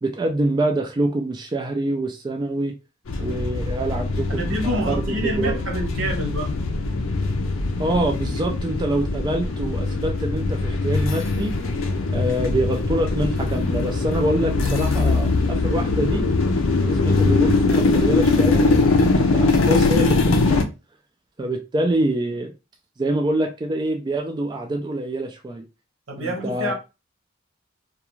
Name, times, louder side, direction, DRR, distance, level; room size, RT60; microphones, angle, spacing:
voice 1, 0.0-2.7 3.2-5.6 7.8-11.5 12.1-16.2 16.8-20.6 21.4-22.5 23.0-25.6 26.2-26.7, right 1 dB, 20° right, 0.3 m, -25 dB
sound 1, 3.1-20.6, left 3 dB, 80° left, 0.5 m, -21 dB
voice 2, 4.3-6.5 26.1-26.7, right 1 dB, 75° right, 1.0 m, -27 dB
2.4 x 2.3 x 3.0 m
head